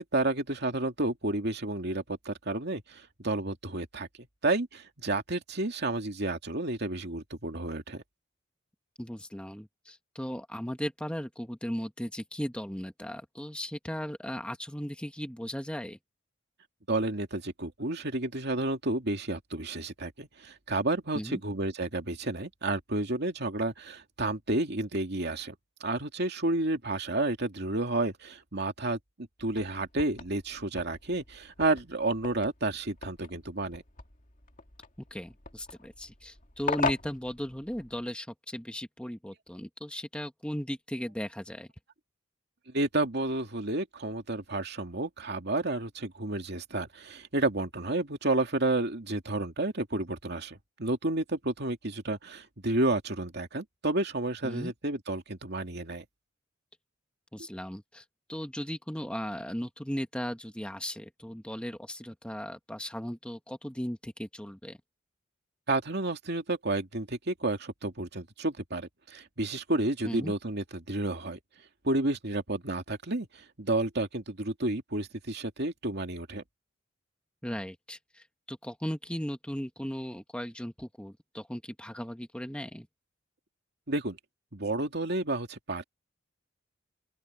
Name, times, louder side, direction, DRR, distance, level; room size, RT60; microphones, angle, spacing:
voice 1, 0.0-4.1 4.4-8.0 16.9-25.5 25.8-33.8 42.7-56.1 65.7-71.4 71.8-76.4 83.9-84.2 84.5-85.8, right 2 dB, 55° right, 2.5 m, -31 dB
voice 2, 9.0-16.0 21.1-21.4 35.1-41.7 54.4-54.7 57.3-64.8 70.0-70.3 77.4-82.9, equal, 5° left, 1.4 m, -37 dB
sound 1, 29.4-38.1, left 4 dB, 45° left, 2.4 m, -40 dB
open air
head